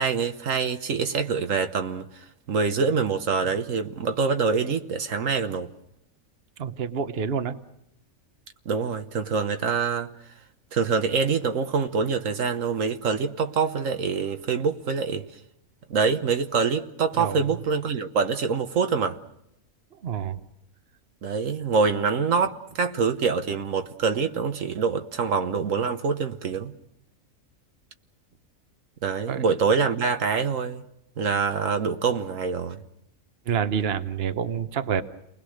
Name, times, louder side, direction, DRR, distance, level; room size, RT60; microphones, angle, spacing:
voice 1, 0.0-2.0 2.5-5.7 8.6-10.1 10.7-15.3 15.9-19.2 21.2-26.7 29.0-30.8 31.2-32.8, right 5 dB, 70° right, 1.4 m, -25 dB
voice 2, 6.6-7.5 17.2-17.4 20.0-20.4 29.3-29.4 33.5-35.0, right 7 dB, 50° right, 1.2 m, -27 dB
30.0 x 20.5 x 6.5 m
omnidirectional pair, 1.4 m